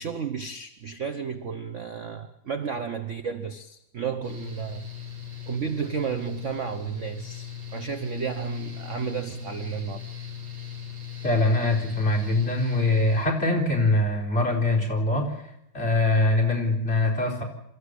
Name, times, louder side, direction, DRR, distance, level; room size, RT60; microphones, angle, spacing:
voice 1, 0.0-4.8 5.5-10.0, right 6 dB, 45° right, 1.0 m, -32 dB
Mechanical fan, 4.2-13.3, left 8 dB, 75° right, 5.1 m, -39 dB
voice 2, 11.2-15.4 15.7-17.4, left 2 dB, 25° left, 4.5 m, -23 dB
27.0 x 14.0 x 8.2 m
omnidirectional pair, 2.3 m